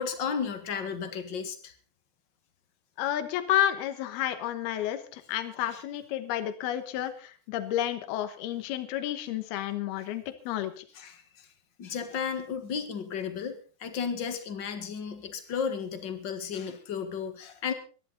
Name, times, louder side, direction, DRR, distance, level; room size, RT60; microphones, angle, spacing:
voice 1, 0.0-1.7 5.7-5.8 10.0-10.1 10.9-11.5 11.8-17.7, left 6 dB, 50° left, 8 dB, 1.3 m, -34 dB
voice 2, 3.0-10.9, left 12 dB, 75° left, 10 dB, 3.1 m, -31 dB
24.5 x 11.0 x 4.0 m, 0.37 s
omnidirectional pair, 4.7 m